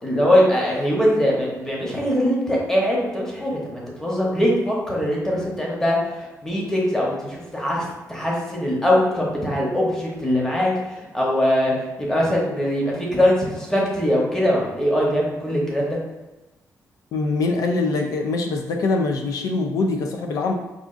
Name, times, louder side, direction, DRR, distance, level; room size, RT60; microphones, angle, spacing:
voice 1, 0.0-16.0, equal, 10° left, -3 dB, 0.8 m, -22 dB
voice 2, 17.1-20.5, left 3 dB, 80° left, 3 dB, 0.4 m, -23 dB
4.8 x 2.4 x 2.4 m, 1.1 s
cardioid pair, 145°, 6 cm